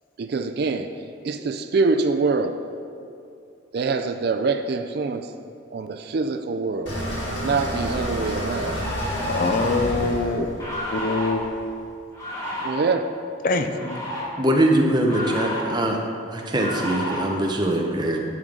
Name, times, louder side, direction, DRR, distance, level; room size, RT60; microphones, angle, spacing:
voice 1, 0.2-0.9 1.2-2.6 3.7-5.3 5.7-7.0 7.4-8.9 12.6-13.0, right 4 dB, 50° right, 7 dB, 0.3 m, -24 dB
sound 1, 6.9-11.8, equal, 60° left, 2.0 m, -30 dB
sound 2, 8.6-9.8 10.6-11.3 12.1-12.7 13.6-14.2 15.0-15.7 16.5-17.2, equal, 15° left, 1.6 m, -31 dB
voice 2, 9.3-11.7 13.4-13.7, left 3 dB, 45° left, 7 dB, 0.4 m, -24 dB
voice 3, 14.4-16.0 16.3-18.2, right 1 dB, 20° right, 1 dB, 0.8 m, -22 dB
10.5 x 6.3 x 3.8 m, 2.4 s
head